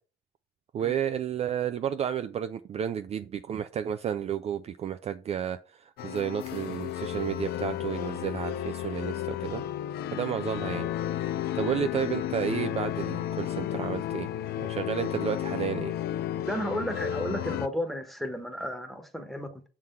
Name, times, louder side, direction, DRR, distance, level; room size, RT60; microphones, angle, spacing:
voice 1, 0.7-9.6 10.1-10.9 11.5-14.3 14.6-15.9, right 9 dB, 40° right, 0.4 m, -32 dB
sound 1, 6.0-17.7, left 12 dB, 70° left, 0.5 m, -33 dB
voice 2, 16.4-19.6, equal, ahead, 1.1 m, -33 dB
6.2 x 3.8 x 5.6 m
cardioid pair, 110°, 17 cm